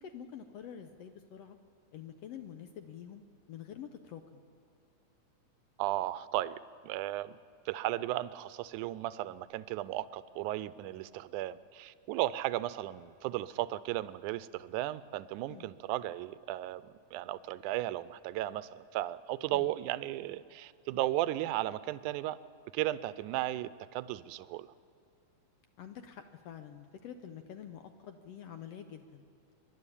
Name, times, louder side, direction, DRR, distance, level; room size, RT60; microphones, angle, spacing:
voice 1, 0.0-1.6 1.9-3.2 3.5-4.4 15.5-15.7 19.5-19.7 25.8-29.2, left 9 dB, 75° left, 7 dB, 1.5 m, -47 dB
voice 2, 5.8-6.6 6.8-7.4 7.7-22.4 22.7-24.7, right 15 dB, 80° right, 16 dB, 2.0 m, -35 dB
24.0 x 11.5 x 9.9 m, 2.6 s
omnidirectional pair, 3.6 m